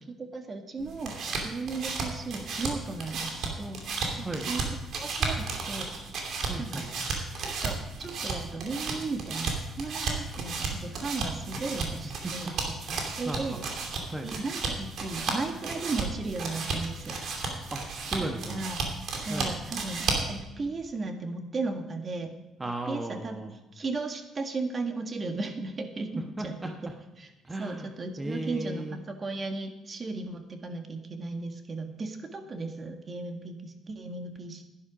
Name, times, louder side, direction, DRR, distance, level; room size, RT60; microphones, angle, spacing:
voice 1, 0.1-1.2 1.4-3.8 4.2-4.6 5.0-5.9 6.6-6.8 7.4-12.5 13.1-13.6 14.2-17.2 18.4-18.8 19.1-22.3 22.9-23.4 23.7-26.7 27.2-27.3 27.6-34.6, right 3 dB, 40° right, 5 dB, 1.7 m, -35 dB
sound 1, 0.8-20.4, right 4 dB, 65° right, 2.7 m, -34 dB
voice 2, 6.5-6.9 12.2-13.6 14.1-14.3 17.7-18.7 19.3-19.5 22.6-23.5 26.2-26.9 27.4-29.0, right 2 dB, 20° right, 3 dB, 1.2 m, -36 dB
10.5 x 10.5 x 5.1 m, 0.99 s
supercardioid pair, 65°, 0 cm